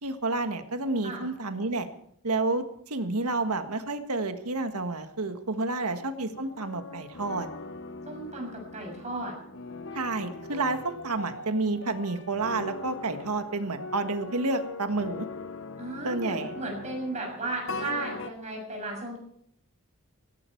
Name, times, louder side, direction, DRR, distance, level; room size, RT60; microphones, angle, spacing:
voice 1, 0.0-1.9 2.2-7.5 9.9-15.3 16.0-16.5, right 3 dB, 85° right, 8 dB, 1.7 m, -30 dB
sound 1, 6.3-18.3, left 3 dB, 60° left, 0.9 m, -41 dB
voice 2, 8.0-9.3 15.8-19.2, right 2 dB, 30° right, 0 dB, 6.8 m, -35 dB
17.5 x 17.0 x 4.6 m, 0.67 s
head